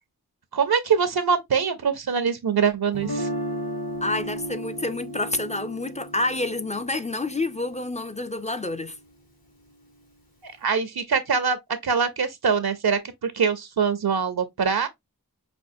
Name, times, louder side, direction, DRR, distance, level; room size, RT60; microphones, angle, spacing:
voice 1, 0.5-3.3 10.4-11.6 11.8-14.9, right 6 dB, 85° right, 0.6 m, -23 dB
Guitar, 2.9-8.9, equal, 75° left, 1.6 m, -35 dB
voice 2, 4.0-9.0, left 2 dB, 20° left, 0.3 m, -28 dB
5.3 x 2.3 x 2.6 m
wide cardioid pair, 50°, 37 cm